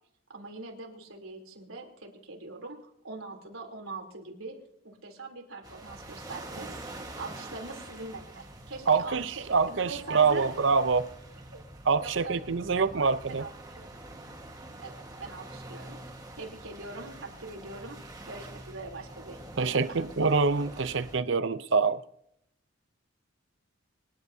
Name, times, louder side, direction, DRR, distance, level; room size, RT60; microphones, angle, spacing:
voice 1, 0.3-2.8 3.0-4.6 4.8-10.5 12.0-13.9 14.8-16.0 16.4-18.0 18.3-20.0, right 3 dB, 80° right, 3.4 m, -42 dB
sound 1, 5.6-21.2, right 1 dB, 20° right, 1.5 m, -46 dB
voice 2, 8.9-11.1 11.9-13.5 19.6-22.0, right 4 dB, 60° right, 0.7 m, -25 dB
26.0 x 12.0 x 2.8 m
head